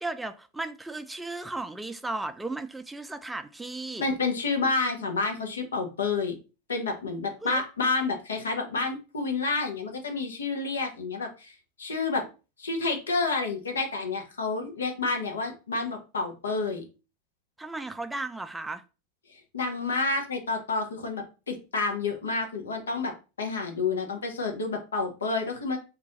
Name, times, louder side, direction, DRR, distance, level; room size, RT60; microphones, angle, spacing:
voice 1, 0.0-4.1 7.4-7.6 17.6-18.8, right 2 dB, 10° right, 0.4 m, -35 dB
voice 2, 4.0-6.4 6.7-11.5 11.8-12.2 12.6-16.8 19.5-25.8, left 3 dB, 85° left, 0.7 m, -29 dB
2.4 x 2.2 x 3.9 m
hypercardioid pair, 95°, 0 cm